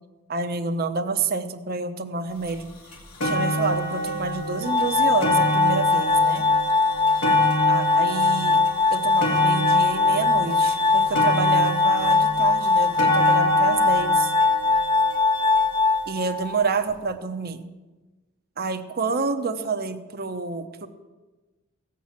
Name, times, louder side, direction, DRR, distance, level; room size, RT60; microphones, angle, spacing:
voice 1, 0.3-2.7 3.2-6.4 7.7-8.6 8.9-14.3 16.1-17.7 18.6-20.9, right 4 dB, 45° right, 7 dB, 0.9 m, -28 dB
sound 1, 2.5-2.6 2.9-16.1 16.9-17.0, equal, 85° left, 2.5 m, -28 dB
Glass, 4.6-16.6, left 4 dB, 20° left, 0.7 m, -21 dB
16.5 x 6.0 x 7.4 m, 1.2 s
head